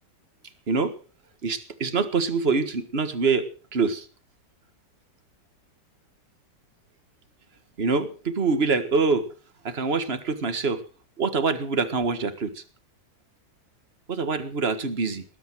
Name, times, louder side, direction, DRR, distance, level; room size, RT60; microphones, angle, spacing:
voice 1, 1.4-3.5 3.7-4.1 7.8-9.3 9.6-10.8 11.2-12.6 14.1-15.2, right 4 dB, 35° right, 10 dB, 1.9 m, -25 dB
20.0 x 11.0 x 6.3 m, 0.39 s
omnidirectional pair, 1.9 m